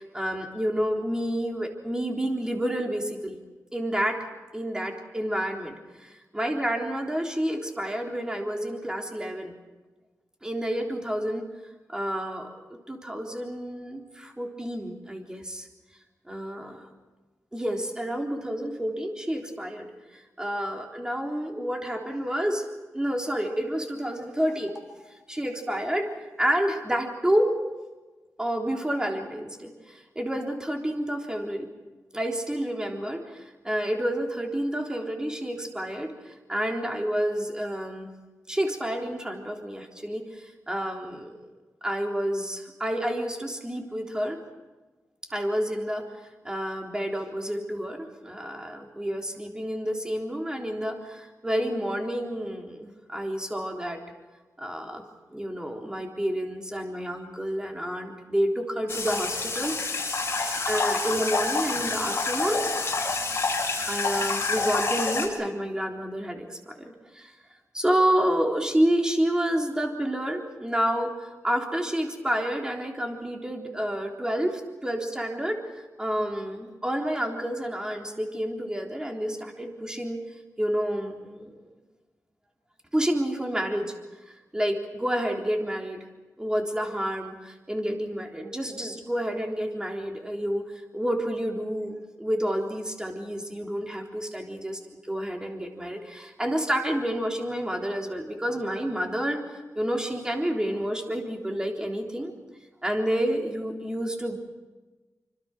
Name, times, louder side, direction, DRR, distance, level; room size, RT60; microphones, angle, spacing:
voice 1, 0.0-3.4 3.7-4.3 4.5-9.5 10.4-11.5 11.9-15.7 16.3-16.9 17.5-22.7 22.9-24.7 25.3-26.1 26.4-27.6 28.4-31.7 32.1-38.1 38.5-41.5 41.8-44.4 45.3-46.1 46.4-54.0 54.6-55.0 55.3-62.6 63.9-67.3 67.7-75.6 76.0-80.2 80.6-81.7 82.9-83.9 84.5-86.0 86.4-94.8 95.1-102.3 102.8-104.4, equal, 15° right, 1 dB, 3.7 m, -29 dB
sound 1, 58.9-65.3, left 3 dB, 45° left, 6.7 m, -28 dB
26.5 x 26.0 x 6.2 m, 1.2 s
wide cardioid pair, 100°, 6 cm